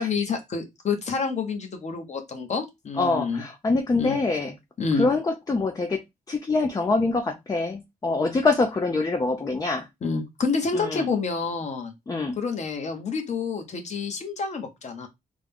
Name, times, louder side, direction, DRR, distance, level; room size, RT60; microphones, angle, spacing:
voice 1, 0.0-3.4 4.0-4.2 4.8-5.1 10.0-11.9 12.3-15.1, left 4 dB, 50° left, 1.0 m, -28 dB
voice 2, 3.0-4.5 5.0-6.0 6.3-9.8 10.7-11.1 12.1-12.4, left 3 dB, 25° left, 0.5 m, -25 dB
3.6 x 2.2 x 3.4 m
wide cardioid pair, 145°, 15 cm